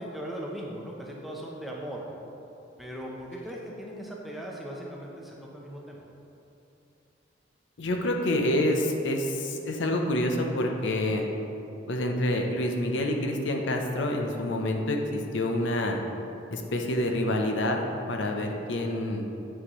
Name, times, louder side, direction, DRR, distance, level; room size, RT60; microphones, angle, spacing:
voice 1, 0.0-2.0 2.8-6.0, equal, ahead, -3 dB, 0.6 m, -38 dB
voice 2, 7.8-11.3 11.9-16.0 16.5-17.8 18.1-19.3, left 1 dB, 65° left, 2 dB, 0.6 m, -27 dB
7.9 x 6.2 x 3.0 m, 2.9 s
head